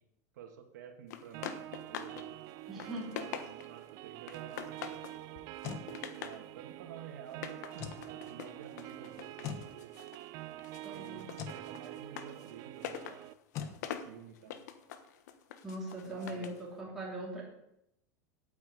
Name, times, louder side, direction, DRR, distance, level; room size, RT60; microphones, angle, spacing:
voice 1, 0.3-2.4 2.7-5.0 6.2-10.0 10.9-13.2 14.0-14.6 16.0-16.5 16.8-17.0, right 8 dB, 90° right, 5 dB, 2.3 m, -51 dB
sound 1, 1.1-2.3 2.6-3.8 4.3-5.2 5.6-6.4 7.3-10.3 10.6-16.6, left 9 dB, 75° left, 1.3 m, -45 dB
sound 2, 1.3-13.3, right 15 dB, 40° right, 0.4 m, -46 dB
voice 2, 2.7-3.1 10.8-11.3 15.6-17.4, right 1 dB, 5° right, -6 dB, 3.0 m, -41 dB
sound 3, 5.3-5.9 7.7-8.1 9.4-9.7 11.3-11.6 13.5-13.8, left 8 dB, 35° left, 1.1 m, -40 dB
9.0 x 8.7 x 8.5 m, 0.83 s
supercardioid pair, 170°, 9 cm